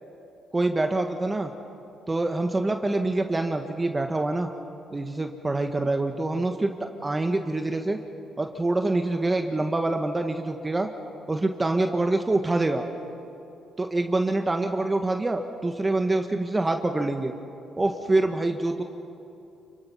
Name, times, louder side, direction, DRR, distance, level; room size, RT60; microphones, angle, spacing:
voice 1, 0.5-1.5 2.1-4.5 4.9-8.0 8.4-10.9 11.3-12.8 13.8-17.3 17.8-18.8, right 2 dB, 20° right, 5 dB, 1.4 m, -25 dB
29.0 x 23.0 x 5.6 m, 2.7 s
cardioid pair, 90°, 0 cm